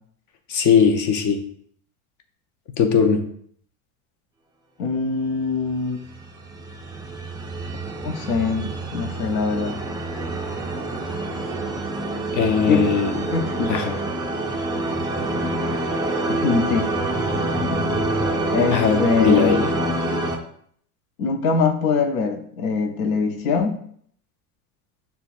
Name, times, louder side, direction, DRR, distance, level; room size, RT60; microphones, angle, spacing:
voice 1, 0.5-1.4 2.8-3.2 12.3-13.1 13.7-13.9 18.7-19.7, left 6 dB, 45° left, 5 dB, 0.8 m, -19 dB
voice 2, 4.8-6.0 8.0-9.8 12.7-12.8 13.2-14.0 16.3-16.9 18.5-19.7 21.2-23.8, left 4 dB, 85° left, 6 dB, 0.8 m, -23 dB
sound 1, 6.0-20.4, right 2 dB, 10° right, 0.3 m, -26 dB
6.8 x 2.3 x 2.5 m, 0.63 s
supercardioid pair, 105°, 41 cm